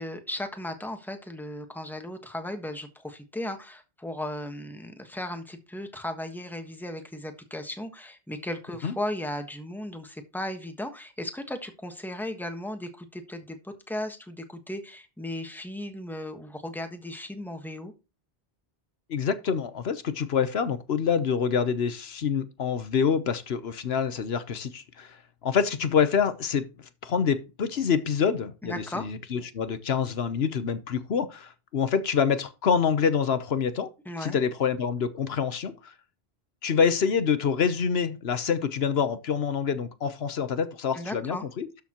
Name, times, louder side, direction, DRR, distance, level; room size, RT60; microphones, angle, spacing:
voice 1, 0.0-17.9 28.6-29.1 34.0-34.4 40.9-41.5, left 1 dB, ahead, 1.3 m, -36 dB
voice 2, 19.1-25.2 25.4-26.7 27.0-33.9 34.2-35.9 36.6-41.7, left 6 dB, 80° left, 1.2 m, -26 dB
12.5 x 7.0 x 3.0 m
omnidirectional pair, 1.0 m